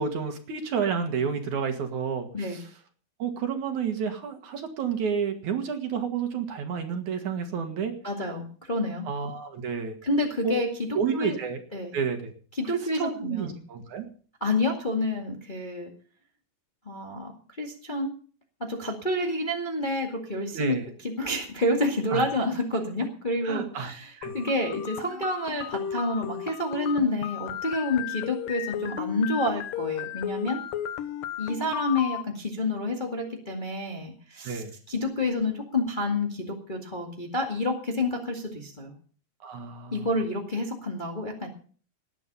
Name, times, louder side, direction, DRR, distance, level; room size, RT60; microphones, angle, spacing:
voice 1, 0.0-2.7 3.2-7.9 9.1-10.0 10.4-10.6 10.9-11.6 11.9-12.3 12.6-14.0 20.5-20.9 22.1-22.3 23.4-24.3 34.4-34.7 39.4-40.1, right 6 dB, 60° right, 6 dB, 2.9 m, -30 dB
voice 2, 8.0-9.0 10.0-10.7 11.1-11.4 11.7-12.0 12.6-13.5 14.4-15.9 16.8-17.3 17.6-18.1 18.6-20.8 21.0-30.6 31.4-38.9 39.9-41.5, left 2 dB, 20° left, 1 dB, 1.6 m, -29 dB
sound 1, 24.2-32.2, left 10 dB, 75° left, 2.6 m, -34 dB
19.0 x 9.3 x 5.5 m, 0.43 s
omnidirectional pair, 4.1 m